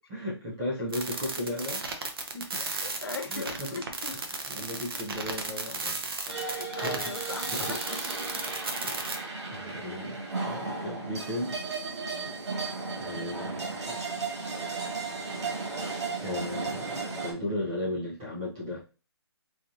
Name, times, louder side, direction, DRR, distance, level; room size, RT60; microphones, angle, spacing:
voice 1, 0.1-2.1 2.3-2.6 3.3-3.8 4.1-6.0 6.8-7.1 7.5-7.8 8.8-9.1 9.5-11.6 12.2-12.3 13.0-14.1 14.4-14.9 16.2-18.8, left 1 dB, 10° right, -5 dB, 0.3 m, -36 dB
sound 1, 0.9-9.2, right 3 dB, 60° right, 0.8 m, -34 dB
voice 2, 2.6-4.1 4.9-5.0 6.3-8.3 9.7-10.0 10.3-10.5, left 4 dB, 60° left, 4 dB, 1.0 m, -40 dB
sound 2, 6.3-17.3, right 3 dB, 85° right, 1.8 m, -35 dB
4.5 x 2.6 x 2.4 m, 0.35 s
hypercardioid pair, 165°, 14 cm